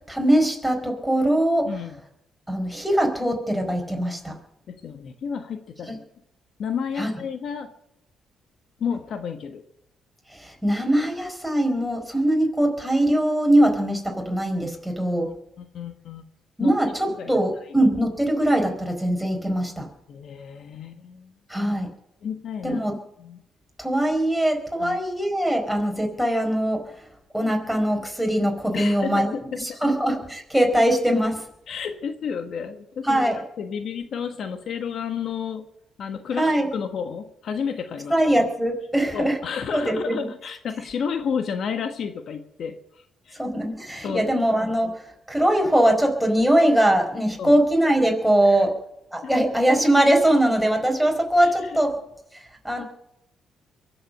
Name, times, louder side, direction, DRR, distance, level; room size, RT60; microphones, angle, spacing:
voice 1, 0.1-1.7 2.5-4.3 5.9-6.0 7.0-7.1 10.3-15.3 16.6-19.9 21.5-21.9 22.6-22.9 23.8-26.8 27.3-29.3 29.6-31.4 33.0-33.4 36.4-36.7 38.1-39.4 39.7-40.2 43.4-48.7 49.1-52.0 52.3-52.8, right 1 dB, ahead, 2 dB, 4.6 m, -21 dB
voice 2, 1.6-2.0 4.8-6.0 6.6-7.7 8.8-9.6 15.2-16.2 16.6-16.7 17.2-17.3 20.1-21.3 22.2-22.8 23.2-23.4 24.8-25.0 28.7-29.8 31.7-35.6 36.0-38.1 39.1-42.8 43.3-43.4 44.0-44.4 47.4-47.6 48.5-48.6 49.2-49.4 51.4-51.5, left 6 dB, 65° left, 7 dB, 1.4 m, -31 dB
23.0 x 7.9 x 6.8 m, 0.78 s
cardioid pair, 90°, 0 cm